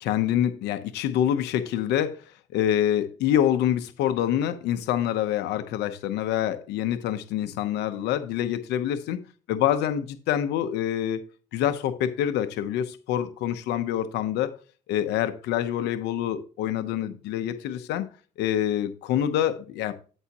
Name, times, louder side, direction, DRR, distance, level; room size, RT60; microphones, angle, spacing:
voice 1, 0.0-2.2 2.5-9.2 9.5-11.2 11.5-14.5 14.9-18.1 18.4-19.9, left 11 dB, 85° left, 0.9 m, -26 dB
12.5 x 5.6 x 3.0 m
cardioid pair, 110°, 17 cm